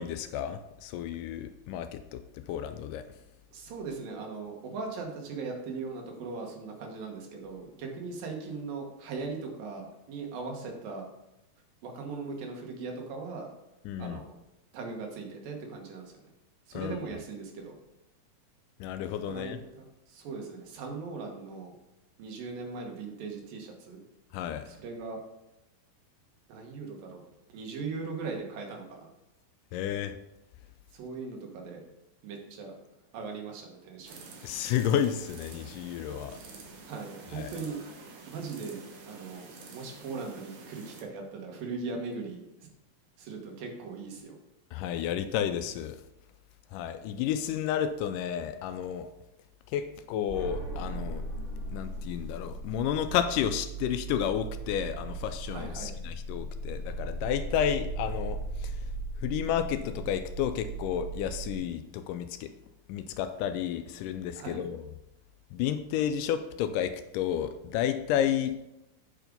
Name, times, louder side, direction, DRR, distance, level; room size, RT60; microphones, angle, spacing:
voice 1, 0.0-2.2 2.5-3.0 13.9-14.2 16.7-17.0 18.8-19.6 24.3-24.7 29.7-30.2 34.4-36.4 37.4-37.5 44.7-46.0 46.7-49.1 49.7-51.2 51.7-58.8 59.2-62.5 62.9-64.8 65.5-68.6, left 9 dB, 80° left, 10 dB, 2.0 m, -31 dB
voice 2, 3.5-11.1 11.8-13.5 14.0-14.3 14.7-16.3 16.7-17.7 19.2-21.7 22.2-24.0 24.7-25.2 26.5-27.2 27.5-29.1 30.9-31.8 32.2-32.7 33.1-34.2 36.9-37.8 38.3-38.8 39.1-39.5 39.7-42.7 43.2-44.4 55.5-55.9 64.4-64.7, right 4 dB, 85° right, 2 dB, 3.1 m, -39 dB
sound 1, 34.1-41.0, right 4 dB, 65° right, 2.2 m, -48 dB
sound 2, 50.3-61.6, right 2 dB, 25° right, 1.6 m, -37 dB
8.9 x 4.8 x 5.2 m, 0.91 s
omnidirectional pair, 3.9 m